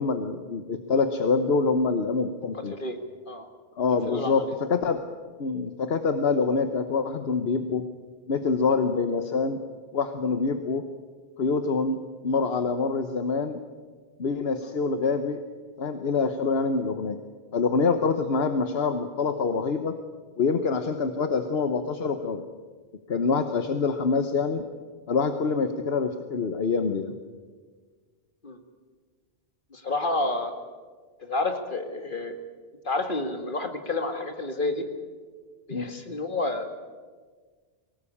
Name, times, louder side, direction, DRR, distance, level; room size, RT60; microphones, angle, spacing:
voice 1, 0.0-2.7 3.8-5.0 5.4-7.8 8.3-9.6 9.9-10.8 11.4-13.6 14.2-15.4 15.8-17.2 17.5-19.9 20.4-22.5 23.1-24.6 25.1-27.1 35.7-35.9, left 4 dB, 70° left, 8 dB, 1.3 m, -25 dB
voice 2, 2.5-3.0 3.3-3.5 4.1-4.5 28.4-28.6 29.7-30.5 31.2-32.4 32.8-34.8 35.7-36.7, left 2 dB, 50° left, 6 dB, 2.1 m, -29 dB
23.5 x 18.5 x 8.6 m, 1.5 s
omnidirectional pair, 1.1 m